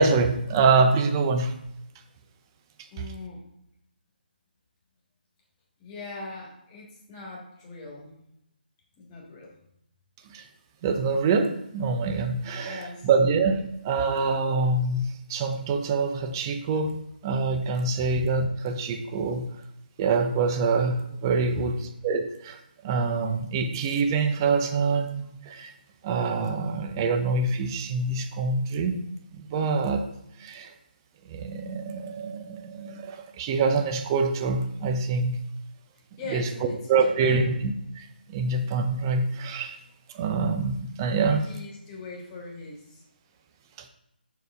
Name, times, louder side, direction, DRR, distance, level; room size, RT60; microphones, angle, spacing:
voice 1, 0.0-1.5 3.0-3.1 10.3-10.5 10.8-19.5 20.0-25.7 26.0-29.0 29.3-30.1 30.4-30.7 31.2-35.4 36.3-39.8 40.1-41.4, right 4 dB, 25° right, 6 dB, 0.5 m, -25 dB
voice 2, 2.9-3.4 5.8-8.1 9.0-9.6 12.6-13.1 36.2-37.6 41.2-43.0, left 3 dB, 20° left, -2 dB, 1.5 m, -41 dB
6.4 x 4.6 x 3.4 m, 0.78 s
figure-of-eight pair, 155°, 6 cm